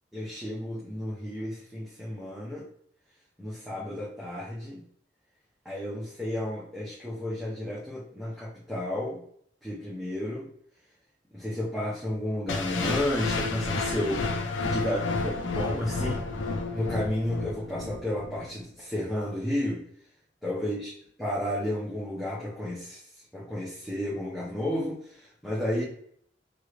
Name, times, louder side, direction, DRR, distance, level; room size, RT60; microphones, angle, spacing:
voice 1, 0.1-2.7 3.4-4.8 5.6-9.2 9.6-10.5 11.3-16.2 16.7-19.8 20.4-20.9 21.2-23.0 23.3-25.8, left 1 dB, ahead, -7 dB, 0.6 m, -32 dB
sound 1, 12.5-18.5, left 3 dB, 85° left, 0.4 m, -31 dB
3.0 x 2.4 x 3.1 m, 0.63 s
head